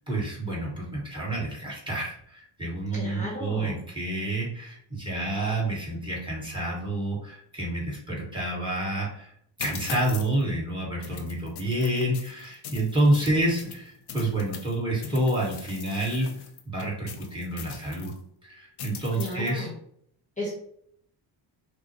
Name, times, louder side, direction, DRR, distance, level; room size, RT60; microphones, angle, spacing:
voice 1, 0.0-9.3 9.6-16.3 16.6-18.1 18.4-19.7, right 1 dB, 10° right, -4 dB, 1.6 m, -28 dB
voice 2, 2.9-3.8 19.2-19.7 20.4-20.5, left 1 dB, 15° left, -4 dB, 1.2 m, -34 dB
sound 1, 9.6-10.4 11.0-14.7 15.0-18.2 18.8-19.6, left 7 dB, 65° left, 0.6 m, -41 dB
5.8 x 2.2 x 2.9 m, 0.67 s
cardioid pair, 140°, 44 cm